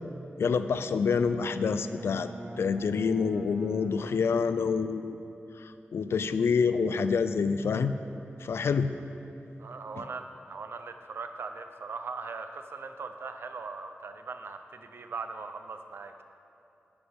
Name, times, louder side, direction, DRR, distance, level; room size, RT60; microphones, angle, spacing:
voice 1, 0.4-5.2 5.6-7.9 8.4-8.9, left 5 dB, 90° left, 11 dB, 0.4 m, -27 dB
Bowed string instrument, 0.9-5.1, equal, 50° right, 2.1 m, -44 dB
voice 2, 9.6-16.2, right 4 dB, 70° right, 7 dB, 0.6 m, -40 dB
10.0 x 9.6 x 3.5 m, 2.9 s
wide cardioid pair, 145°, 4 cm